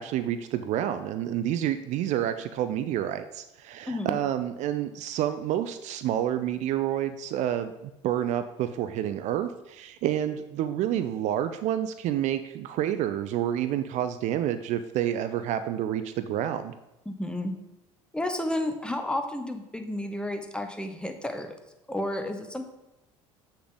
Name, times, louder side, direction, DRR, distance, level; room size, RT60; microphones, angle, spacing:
voice 1, 0.0-16.7, right 11 dB, 50° right, 11 dB, 0.5 m, -29 dB
voice 2, 3.9-4.2 17.1-17.5 18.1-21.5 21.9-22.6, left 1 dB, 5° left, 6 dB, 1.0 m, -31 dB
7.8 x 6.3 x 3.9 m, 0.96 s
figure-of-eight pair, 65°, 16 cm